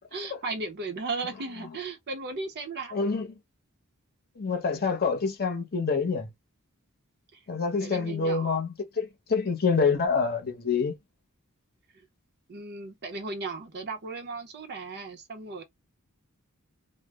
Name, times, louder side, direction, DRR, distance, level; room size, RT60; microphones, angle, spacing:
voice 1, 0.1-3.0 7.3-7.4 7.8-8.6 9.4-9.6 11.9-12.1 12.5-15.6, right 3 dB, 50° right, 0.6 m, -36 dB
voice 2, 2.9-3.4 4.4-6.3 7.5-11.0, left 5 dB, 45° left, 0.7 m, -27 dB
2.2 x 2.0 x 3.3 m
head